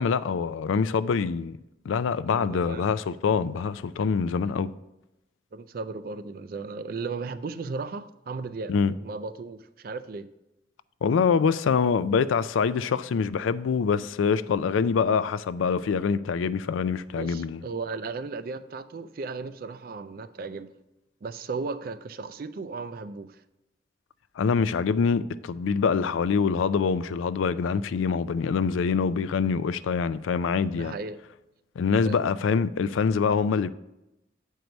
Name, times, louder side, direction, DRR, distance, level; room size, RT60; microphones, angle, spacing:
voice 1, 0.0-1.6 1.9-4.7 8.7-8.9 11.0-17.6 24.4-30.9 31.8-33.7, left 5 dB, 85° left, 0.4 m, -25 dB
voice 2, 2.3-2.9 5.5-8.7 9.0-10.3 17.2-20.7 21.2-23.4 30.8-31.2 32.0-32.2, right 4 dB, 50° right, 0.4 m, -35 dB
8.1 x 4.6 x 5.2 m
head